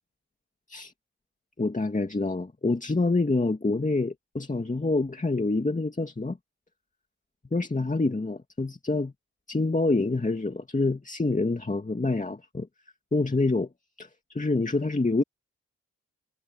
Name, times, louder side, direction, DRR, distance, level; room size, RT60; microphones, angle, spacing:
voice 1, 1.6-6.4 7.5-9.1 9.5-12.7 13.1-13.7 14.0-15.2, left 3 dB, 25° left, 2.3 m, -26 dB
cardioid pair, 50°, 30 cm